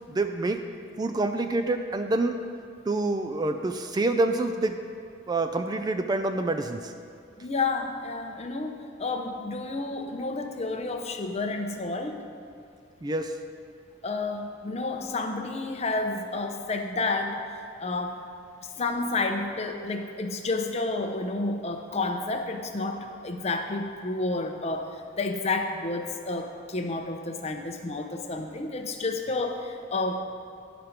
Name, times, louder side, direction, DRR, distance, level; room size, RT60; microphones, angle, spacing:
voice 1, 0.1-0.6 1.0-2.4 2.9-4.8 5.3-6.9 13.0-13.4, right 2 dB, 20° right, 7 dB, 0.3 m, -27 dB
voice 2, 7.4-12.1 14.0-17.4 17.8-18.2 18.8-24.9 25.2-30.2, left 3 dB, 35° left, 4 dB, 0.7 m, -30 dB
11.0 x 5.1 x 5.8 m, 2.3 s
head